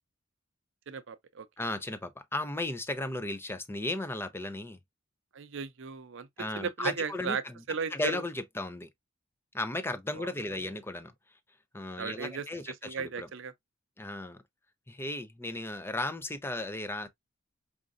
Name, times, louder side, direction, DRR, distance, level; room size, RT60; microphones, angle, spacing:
voice 1, 0.9-1.5 5.3-6.3 6.5-7.4 7.7-8.2 10.1-10.3 12.0-13.5, right 5 dB, 65° right, 0.6 m, -36 dB
voice 2, 1.6-4.8 6.4-7.5 7.9-8.9 9.5-11.1 11.7-13.3 14.0-14.4 14.9-17.1, left 2 dB, 10° left, 0.5 m, -35 dB
5.0 x 2.6 x 2.5 m
head